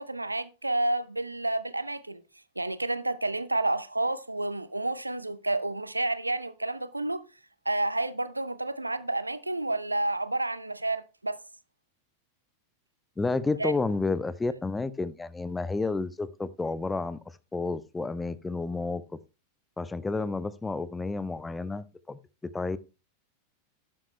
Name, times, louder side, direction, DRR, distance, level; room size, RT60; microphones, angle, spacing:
voice 1, 0.0-2.2 2.6-7.2 7.7-11.4 13.6-13.8, right 2 dB, 85° right, 0.7 m, -30 dB
voice 2, 13.2-17.2 17.5-19.0 19.8-22.2 22.5-22.8, left 3 dB, 10° left, 0.7 m, -30 dB
11.5 x 9.3 x 3.1 m
figure-of-eight pair, 90°, 0 cm